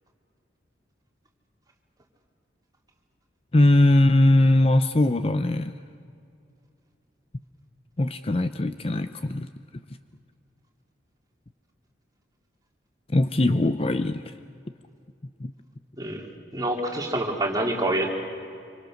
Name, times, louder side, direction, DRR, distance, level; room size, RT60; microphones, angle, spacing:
voice 1, 3.5-5.7 8.0-9.5 13.1-14.3 15.4-15.5, left 1 dB, 30° left, 10 dB, 0.6 m, -20 dB
voice 2, 16.5-18.1, right 1 dB, 20° right, 0 dB, 3.2 m, -26 dB
26.5 x 25.0 x 6.5 m, 2.4 s
head